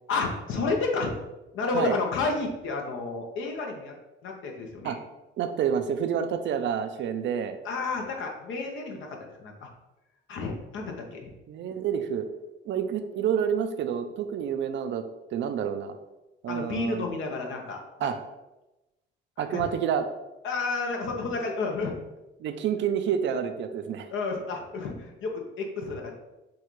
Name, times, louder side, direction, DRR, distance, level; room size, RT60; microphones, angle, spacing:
voice 1, 0.1-1.1 1.5-3.9 4.2-4.9 7.6-9.7 10.3-11.3 16.5-18.1 19.4-19.6 20.4-21.9 24.1-26.1, left 3 dB, 80° left, 2 dB, 0.8 m, -31 dB
voice 2, 5.4-7.6 11.5-12.3 12.6-15.0 15.3-16.0 16.4-17.0 18.0-18.2 19.4-20.0 22.4-24.1, right 8 dB, 70° right, 8 dB, 0.5 m, -28 dB
6.1 x 2.4 x 3.1 m, 0.99 s
cardioid pair, 90°, 20 cm